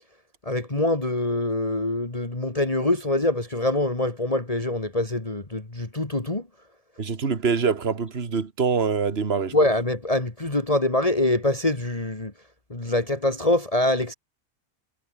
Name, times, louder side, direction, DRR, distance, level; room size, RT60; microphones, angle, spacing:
voice 1, 0.5-6.5 9.5-12.3 12.7-14.1, left 1 dB, 25° left, 2.5 m, -24 dB
voice 2, 7.0-9.5, right 5 dB, 45° right, 2.0 m, -24 dB
omnidirectional pair, 1.5 m